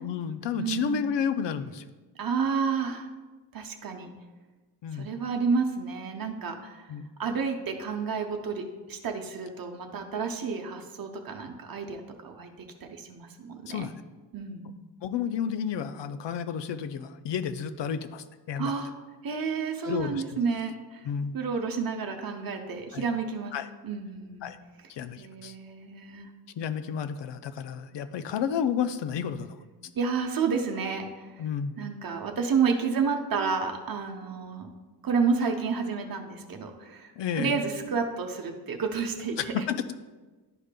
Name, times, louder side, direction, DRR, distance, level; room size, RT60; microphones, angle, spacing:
voice 1, 0.0-1.8 4.8-5.1 6.9-7.1 13.7-13.9 15.0-18.7 19.8-20.4 21.0-21.4 22.9-23.0 23.5-23.7 24.4-24.6 24.9-25.5 26.6-29.5 31.4-31.8 37.2-37.6 39.4-40.0, left 7 dB, 85° left, 11 dB, 0.5 m, -31 dB
voice 2, 0.6-1.1 2.2-3.1 3.5-4.1 4.9-6.8 7.2-12.5 12.8-13.9 14.3-14.7 18.6-18.9 19.2-21.0 21.3-23.5 23.8-24.5 25.2-26.3 30.0-31.4 31.8-34.7 35.0-39.6, right 5 dB, 55° right, 3 dB, 0.7 m, -30 dB
10.5 x 5.0 x 2.2 m, 1.3 s
wide cardioid pair, 135°, 42 cm